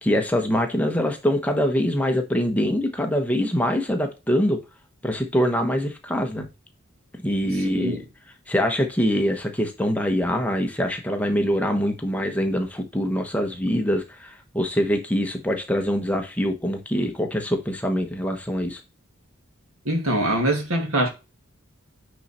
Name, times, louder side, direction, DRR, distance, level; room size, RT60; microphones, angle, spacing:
voice 1, 0.0-4.6 5.0-6.5 7.2-8.0 8.5-18.8, equal, 5° left, 1.1 m, -24 dB
voice 2, 7.6-8.0 19.9-21.1, right 1 dB, 80° right, 2.3 m, -23 dB
9.3 x 4.0 x 4.3 m
head